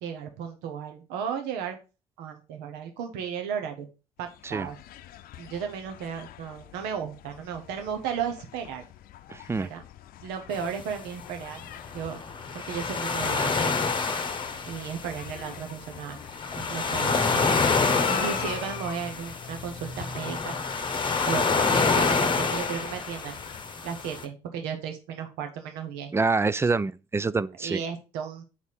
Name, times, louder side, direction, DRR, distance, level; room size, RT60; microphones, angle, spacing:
voice 1, 0.0-1.8 2.2-3.9 4.2-4.8 5.4-8.8 9.5-9.8 10.2-11.6 11.9-12.2 12.5-13.8 14.7-16.2 16.6-20.5 21.2-23.4 23.8-26.1 27.1-27.2 27.6-28.4, right 7 dB, 75° right, 1.1 m, -34 dB
sound 1, 4.2-23.6, left 12 dB, 60° left, 0.7 m, -45 dB
voice 2, 9.3-9.7 26.1-27.8, right 3 dB, 15° right, 0.3 m, -26 dB
sound 2, 10.5-24.2, left 4 dB, 30° left, 1.0 m, -27 dB
5.7 x 4.1 x 4.8 m
hypercardioid pair, 55°, 17 cm